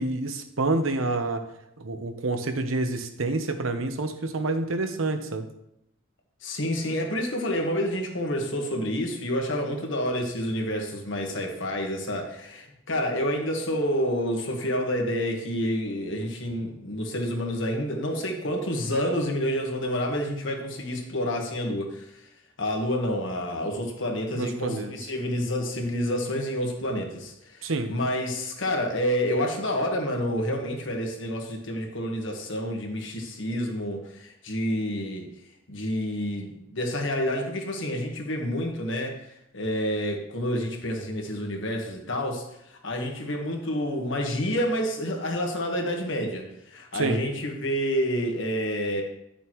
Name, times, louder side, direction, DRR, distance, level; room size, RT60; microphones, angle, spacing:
voice 1, 0.0-1.4 1.8-5.5 24.3-24.9 27.6-27.9 46.9-47.2, right 2 dB, 85° right, 8 dB, 0.9 m, -28 dB
voice 2, 6.4-22.1 22.6-35.2 35.7-39.1 39.5-49.0, equal, 65° left, 2 dB, 1.5 m, -28 dB
10.5 x 6.8 x 3.1 m, 0.81 s
head